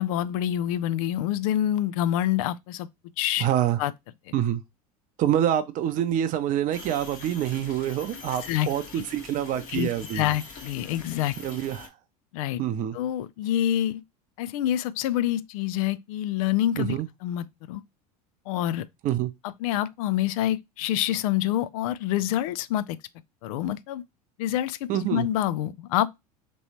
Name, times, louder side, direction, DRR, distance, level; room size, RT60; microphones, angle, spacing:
voice 1, 0.0-2.9 3.2-3.5 3.8-3.9 8.4-8.7 9.7-9.9 10.1-11.4 12.3-12.6 12.9-14.0 14.4-17.0 17.2-17.8 18.5-18.8 19.4-23.0 23.4-24.0 24.4-26.1, left 12 dB, 65° left, 0.4 m, -26 dB
voice 2, 3.4-3.8 4.3-4.6 5.2-10.2 11.4-11.9 12.6-13.0 16.8-17.1 19.0-19.3 24.9-25.3, right 11 dB, 40° right, 0.6 m, -26 dB
sound 1, 6.7-11.9, left 4 dB, 45° left, 1.3 m, -43 dB
3.1 x 3.0 x 4.1 m
hypercardioid pair, 85°, 20 cm